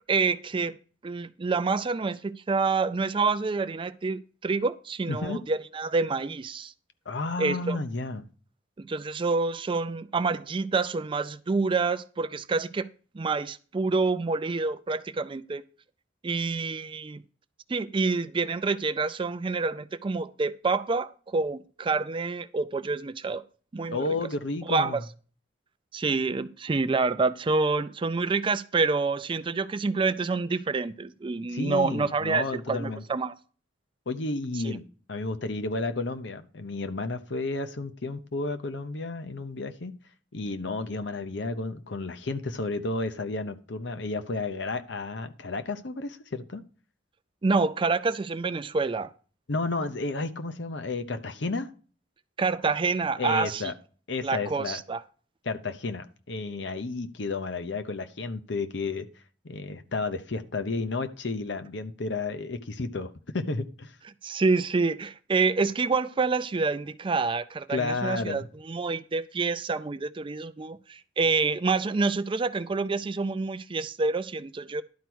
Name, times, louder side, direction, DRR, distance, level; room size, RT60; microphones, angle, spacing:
voice 1, 0.1-0.8 1.0-6.7 7.4-7.8 8.8-12.9 13.1-15.6 16.2-17.2 17.7-23.4 23.7-24.0 24.7-25.0 25.9-33.3 34.6-34.8 47.4-49.1 52.4-53.7 54.2-55.0 64.2-74.8, right 4 dB, 25° right, 0.4 m, -27 dB
voice 2, 5.1-5.4 7.1-8.2 23.9-25.0 31.5-33.0 34.1-34.8 35.1-39.9 40.3-46.6 49.5-51.7 53.2-53.7 54.1-54.8 55.4-59.1 59.4-63.9 67.7-68.5, left 3 dB, 65° left, 0.8 m, -32 dB
11.5 x 4.6 x 6.1 m
head